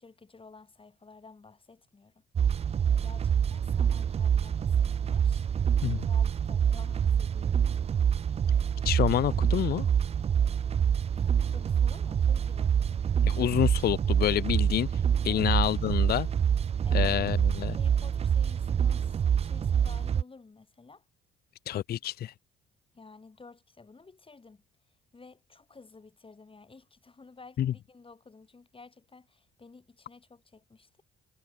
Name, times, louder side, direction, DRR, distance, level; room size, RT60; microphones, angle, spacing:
voice 1, 0.0-2.1 2.5-2.7 3.0-5.5 6.0-7.6 11.2-13.0 15.3-15.6 16.8-17.2 17.7-21.0 22.9-24.6 25.1-31.0, left 4 dB, 25° left, 5.9 m, -53 dB
sound 1, 2.4-20.2, right 8 dB, 30° right, 0.3 m, -26 dB
voice 2, 8.8-9.9 13.2-14.9 15.2-16.3 16.9-17.8 21.7-22.3 27.6-27.7, left 11 dB, 50° left, 0.5 m, -27 dB
cardioid pair, 90°, 20 cm